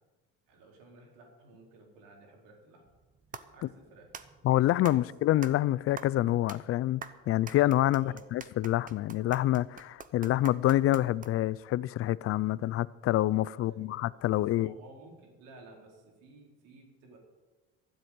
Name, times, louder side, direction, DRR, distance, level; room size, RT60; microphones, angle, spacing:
voice 1, 0.5-2.9 3.5-4.1 4.9-5.1 8.0-8.3 13.4-13.9 14.1-17.2, right 3 dB, 80° right, 4.4 m, -54 dB
sound 1, 2.9-11.6, right 6 dB, 25° right, 0.9 m, -47 dB
voice 2, 4.4-7.0 7.3-14.7, left 14 dB, 45° left, 0.4 m, -27 dB
13.0 x 7.9 x 9.0 m
cardioid pair, 130°, 32 cm